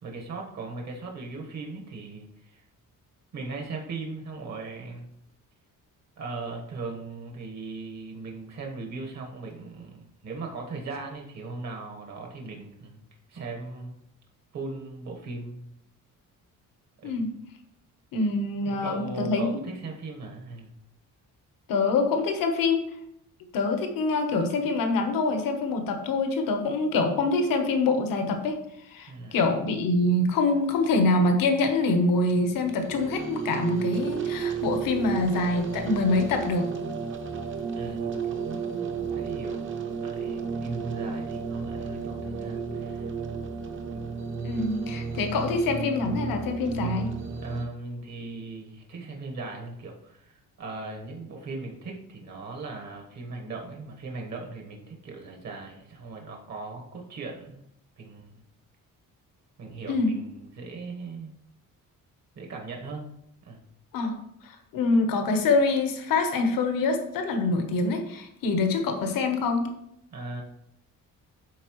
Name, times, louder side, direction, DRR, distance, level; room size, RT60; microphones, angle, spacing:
voice 1, 0.0-2.6 3.3-5.1 6.2-10.0 10.2-13.0 13.3-14.0 14.5-15.6 17.0-17.2 18.7-20.7 29.1-29.4 37.7-39.7 40.0-43.1 47.4-57.6 58.0-58.3 59.6-61.3 62.3-63.1 63.4-63.6 70.1-70.4, right 3 dB, 55° right, 1 dB, 1.3 m, -38 dB
voice 2, 18.1-19.6 21.7-22.8 23.5-28.6 28.9-36.7 44.4-47.1 59.9-60.1 63.9-64.2 64.4-69.7, left 3 dB, 75° left, 5 dB, 1.1 m, -25 dB
sound 1, 32.4-47.6, right 6 dB, 35° right, 0.7 m, -33 dB
11.0 x 4.2 x 3.1 m, 0.76 s
cardioid pair, 180°, 34 cm